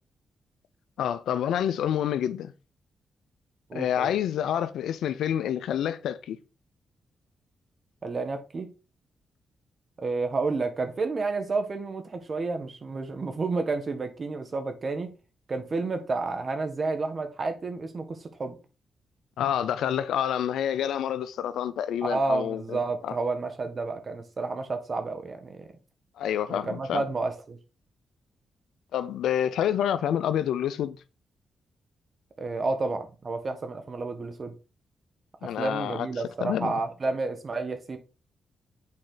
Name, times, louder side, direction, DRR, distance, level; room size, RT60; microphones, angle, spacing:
voice 1, 1.0-2.5 3.7-6.4 19.4-22.8 23.0-23.1 26.2-27.0 28.9-31.0 35.4-36.1 36.4-36.7, left 10 dB, 80° left, 0.5 m, -28 dB
voice 2, 3.7-4.1 8.0-8.7 10.0-15.1 15.5-18.6 22.0-25.7 26.5-27.6 32.4-34.5 35.4-38.0, right 3 dB, 50° right, 1.6 m, -30 dB
7.5 x 4.3 x 3.9 m
supercardioid pair, 50°, 0 cm